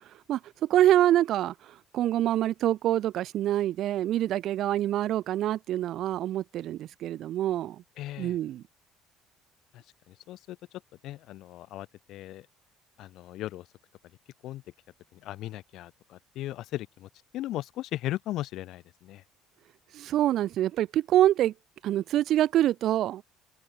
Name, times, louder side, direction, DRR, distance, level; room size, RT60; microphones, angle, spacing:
voice 1, 0.3-7.8 8.2-8.6 19.9-21.5 21.8-23.2, right 13 dB, 55° right, 0.6 m, -26 dB
voice 2, 8.0-8.4 9.7-10.6 11.0-12.5 13.0-13.7 14.4-14.6 15.1-19.2, left 15 dB, 60° left, 0.6 m, -37 dB
cardioid pair, 145°, 0 cm